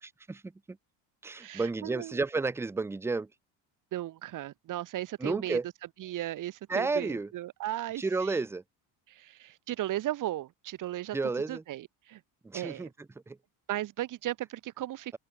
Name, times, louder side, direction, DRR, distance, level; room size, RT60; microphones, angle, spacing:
voice 1, 0.0-0.8 1.2-3.3 5.2-5.7 6.7-7.3 8.0-8.6 11.1-11.6 12.4-13.4, right 3 dB, 5° right, 0.4 m, -32 dB
voice 2, 1.4-2.2 3.9-5.6 6.0-8.4 9.1-11.2 11.5-12.2 12.5-12.9 13.7-15.2, right 14 dB, 40° right, 0.7 m, -36 dB
open air
cardioid pair, 135°, 47 cm